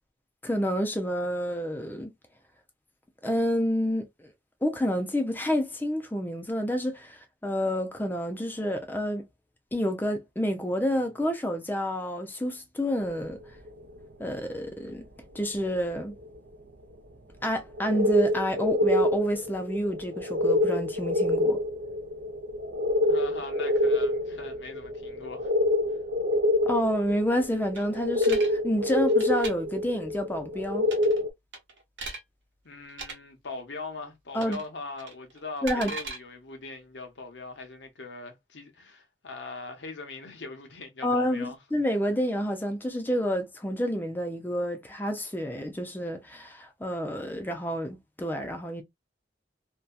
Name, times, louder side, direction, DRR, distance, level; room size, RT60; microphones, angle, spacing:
voice 1, 0.4-2.1 3.2-4.3 4.6-9.3 9.7-13.4 14.2-15.0 15.3-16.1 17.4-21.6 26.7-30.9 34.3-34.6 35.6-35.9 41.0-48.8, equal, 10° left, 0.4 m, -29 dB
sound 1, 13.0-13.2 13.7-13.8 14.0-14.1 15.5-15.6 16.2-16.4 17.8-31.3, left 1 dB, 70° right, 0.5 m, -26 dB
voice 2, 23.0-25.5 32.6-41.6, left 3 dB, 80° left, 0.8 m, -41 dB
sound 2, 27.8-28.5 29.1-29.5 30.8-31.2 31.5-32.2 32.9-33.1 34.4-34.7 35.0-36.2, right 3 dB, 85° right, 1.0 m, -38 dB
2.7 x 2.2 x 2.2 m
head